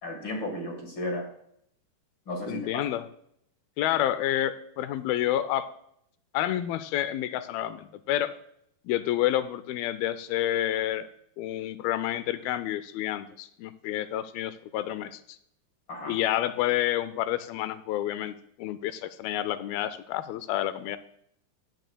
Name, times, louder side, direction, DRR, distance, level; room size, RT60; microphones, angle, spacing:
voice 1, 0.0-1.2 2.3-2.8 15.9-16.2, left 1 dB, 45° left, 1 dB, 1.7 m, -34 dB
voice 2, 2.5-3.0 3.8-5.7 6.3-8.3 8.9-11.1 11.4-15.4 16.1-21.0, left 12 dB, 80° left, 13 dB, 2.3 m, -29 dB
15.5 x 10.5 x 2.3 m, 0.70 s
omnidirectional pair, 4.5 m